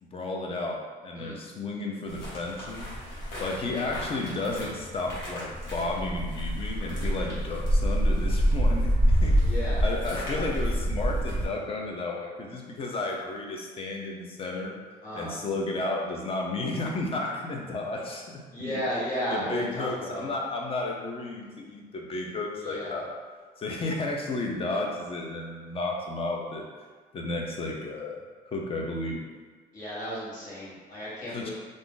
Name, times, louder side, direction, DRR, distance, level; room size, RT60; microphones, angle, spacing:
voice 1, 0.0-2.9 3.4-8.9 9.2-14.8 15.1-18.8 19.3-23.2 23.6-26.7 27.1-29.2 31.3-31.5, left 2 dB, 35° left, 0 dB, 0.6 m, -33 dB
sound 1, 2.1-11.5, equal, 85° left, 1.3 m, -27 dB
voice 2, 9.4-9.8 15.0-15.3 18.5-20.3 22.5-23.0 29.7-31.5, equal, 50° left, -8 dB, 1.4 m, -34 dB
2.5 x 2.4 x 3.7 m, 1.5 s
cardioid pair, 110°, 17 cm